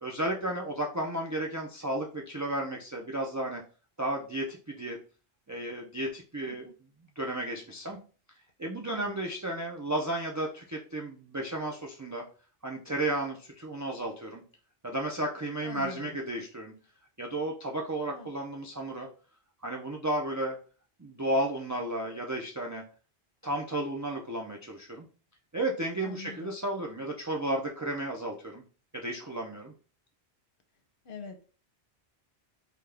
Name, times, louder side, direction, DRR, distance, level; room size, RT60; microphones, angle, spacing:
voice 1, 0.0-3.6 4.0-5.0 5.5-6.6 7.2-8.0 8.6-12.2 12.6-14.4 14.8-16.7 17.2-19.1 19.6-20.6 21.0-22.8 23.4-25.1 25.5-28.6 28.9-29.7, right 1 dB, 25° right, 0 dB, 0.4 m, -33 dB
voice 2, 15.6-16.2 18.0-18.3 26.0-26.5 31.0-31.4, left 4 dB, 60° left, 6 dB, 0.9 m, -43 dB
5.5 x 2.3 x 3.4 m, 0.38 s
omnidirectional pair, 1.1 m